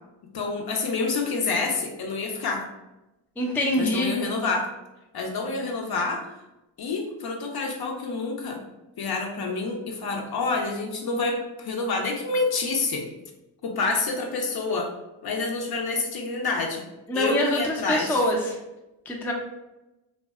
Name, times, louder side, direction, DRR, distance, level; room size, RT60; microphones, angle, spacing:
voice 1, 0.3-2.6 3.8-4.7 5.1-6.2 6.8-8.6 9.0-13.1 13.6-14.9 15.2-16.8 17.1-18.2, left 3 dB, 50° left, 2 dB, 0.6 m, -28 dB
voice 2, 3.4-4.1 17.1-18.6 19.1-19.3, left 1 dB, 5° left, 0 dB, 0.4 m, -25 dB
2.5 x 2.1 x 2.3 m, 0.97 s
supercardioid pair, 50°, 48 cm